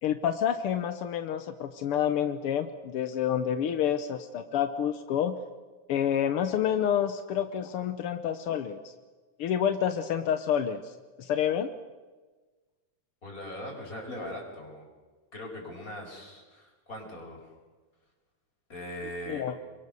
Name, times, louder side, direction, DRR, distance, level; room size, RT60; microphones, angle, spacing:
voice 1, 0.0-5.4 5.9-8.9 9.4-10.9 11.2-11.7 19.3-19.5, left 9 dB, 70° left, 8 dB, 1.4 m, -28 dB
voice 2, 13.2-14.9 15.3-17.5 18.7-19.5, left 1 dB, 25° left, 0 dB, 6.2 m, -40 dB
29.0 x 23.0 x 6.9 m, 1.3 s
omnidirectional pair, 3.6 m